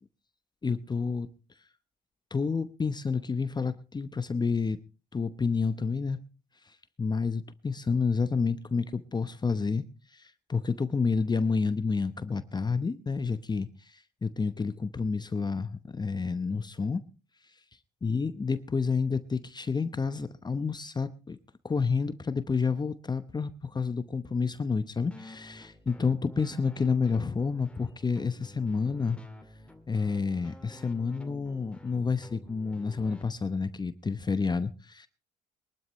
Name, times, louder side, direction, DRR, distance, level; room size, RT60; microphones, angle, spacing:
voice 1, 0.6-1.3 2.3-4.8 5.1-6.2 6.6-17.0 17.4-17.5 18.0-21.4 21.6-29.2 29.9-35.1, left 5 dB, 25° left, 0.8 m, -29 dB
sound 1, 25.1-33.2, left 1 dB, 5° left, 2.1 m, -50 dB
22.0 x 12.5 x 3.1 m
cardioid pair, 80°, 17 cm